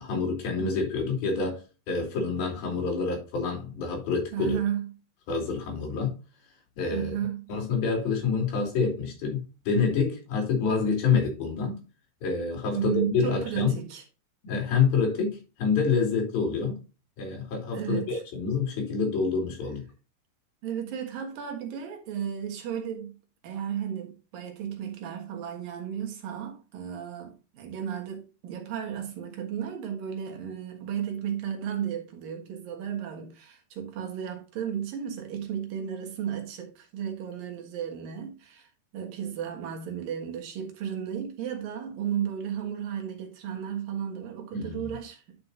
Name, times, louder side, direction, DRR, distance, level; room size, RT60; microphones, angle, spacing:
voice 1, 0.0-1.6 1.9-4.6 5.3-6.1 6.8-7.2 7.5-11.8 12.2-13.8 14.4-16.8 17.2-19.8 44.5-44.9, left 5 dB, 80° left, 4.7 m, -27 dB
voice 2, 4.3-4.9 6.9-7.5 12.7-14.0 17.7-18.1 20.6-23.2 23.4-38.7 38.9-45.4, right 9 dB, 75° right, 3.3 m, -34 dB
11.0 x 5.8 x 2.8 m
omnidirectional pair, 4.2 m